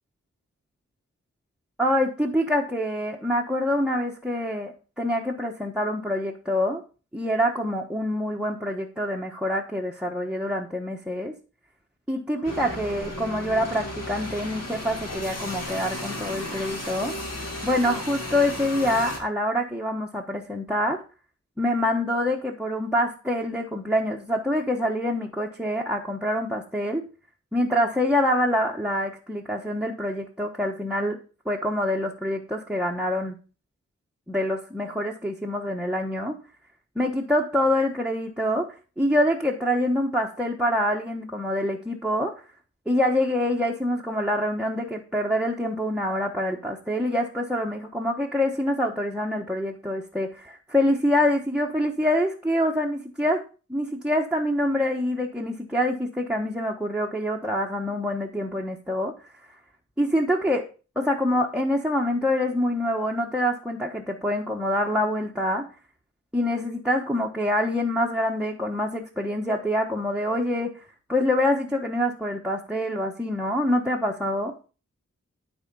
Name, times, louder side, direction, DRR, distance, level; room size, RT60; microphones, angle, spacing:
voice 1, 1.8-6.8 7.1-11.3 12.1-17.3 17.6-21.0 21.6-27.0 27.5-31.2 31.4-33.4 34.3-36.3 37.0-38.7 39.0-42.3 42.9-53.4 53.7-59.1 60.0-60.6 61.0-65.7 66.3-70.7 71.1-74.5, left 1 dB, 5° right, -2 dB, 1.1 m, -25 dB
sound 1, 12.4-19.2, left 1 dB, 60° left, 2.6 m, -34 dB
12.0 x 4.3 x 5.4 m, 0.35 s
wide cardioid pair, 70°, 29 cm